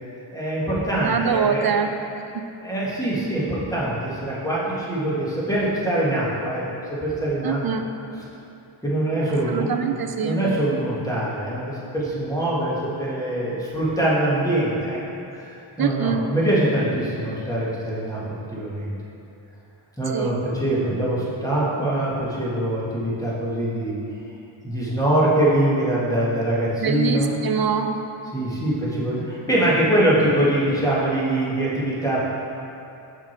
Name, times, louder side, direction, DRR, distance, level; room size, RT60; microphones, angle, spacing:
voice 1, 0.3-1.8 2.6-6.6 6.9-7.6 8.2-8.3 8.8-9.7 10.2-15.0 15.3-18.2 18.5-18.9 20.0-23.9 24.6-27.3 28.3-32.2, right 1 dB, 5° left, -8 dB, 1.6 m, -23 dB
voice 2, 1.0-1.9 2.3-2.4 7.4-7.9 9.5-10.4 15.8-16.2 20.1-20.4 26.8-27.9, right 6 dB, 50° right, 7 dB, 0.5 m, -24 dB
5.9 x 5.9 x 4.5 m, 2.7 s
wide cardioid pair, 100°, 50 cm